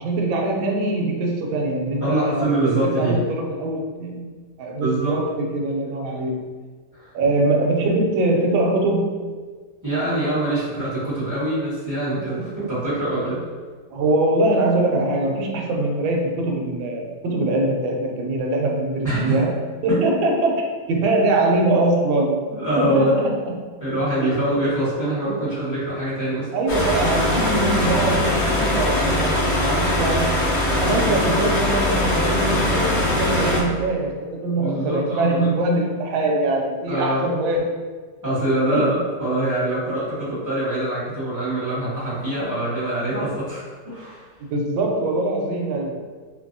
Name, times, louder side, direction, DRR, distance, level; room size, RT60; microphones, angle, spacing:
voice 1, 0.0-4.3 4.6-6.4 7.1-9.2 13.9-19.5 19.8-20.6 20.9-22.4 22.8-23.5 24.2-24.3 26.5-30.3 30.7-37.6 38.7-38.8 44.4-45.9, right 2 dB, 75° right, 1 dB, 1.3 m, -22 dB
voice 2, 2.0-3.2 4.8-5.2 6.9-7.1 9.8-13.4 19.0-19.4 19.9-20.1 22.5-23.2 23.8-26.5 34.6-35.5 36.9-37.3 38.2-38.9 39.2-44.3, right 1 dB, 10° right, -11 dB, 1.0 m, -24 dB
sound 1, 26.7-33.6, left 1 dB, 85° left, 0.6 m, -21 dB
3.7 x 2.6 x 2.6 m, 1.5 s
omnidirectional pair, 2.3 m